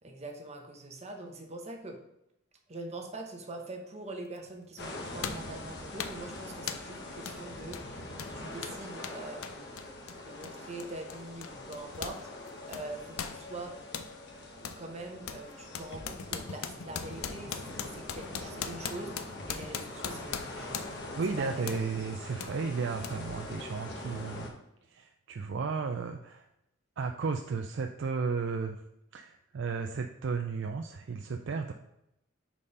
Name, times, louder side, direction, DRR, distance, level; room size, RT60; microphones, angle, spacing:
voice 1, 0.0-2.0 2.7-9.9 10.2-13.8 14.6-17.6 17.9-19.2 19.5-20.9 21.4-21.7, right 2 dB, 30° right, 3 dB, 0.9 m, -43 dB
sound 1, 4.4-4.5 5.2-5.5 6.0-6.3 6.7-6.9 7.3-7.4 7.7-12.2 12.5-14.1 14.6-14.8 15.3-21.1 21.7-21.9 22.4-22.5 23.0-23.1, left 7 dB, 85° left, 0.5 m, -40 dB
sound 2, 4.8-24.5, left 1 dB, 50° left, 1.1 m, -43 dB
voice 2, 21.2-24.5 24.8-26.5 27.0-28.8 29.1-31.7, right 5 dB, 55° right, 5 dB, 0.4 m, -34 dB
5.3 x 4.2 x 5.4 m, 0.84 s
head